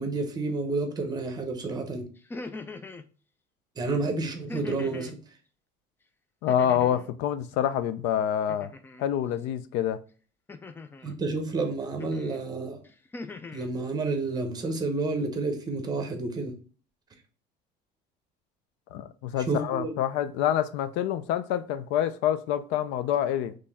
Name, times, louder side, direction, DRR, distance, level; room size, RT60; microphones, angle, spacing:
voice 1, 0.0-2.1 3.8-5.2 11.0-12.8 13.5-16.5 19.4-20.0, right 3 dB, 20° right, 1.0 m, -30 dB
sound 1, 2.2-3.1 4.5-5.2 6.5-7.1 8.5-9.1 10.5-11.1 12.0-12.4 12.8-13.7, left 3 dB, 10° left, 0.3 m, -41 dB
voice 2, 6.4-8.7 9.0-10.0 18.9-23.6, left 10 dB, 80° left, 0.5 m, -27 dB
4.4 x 3.2 x 3.4 m
cardioid pair, 145°, 18 cm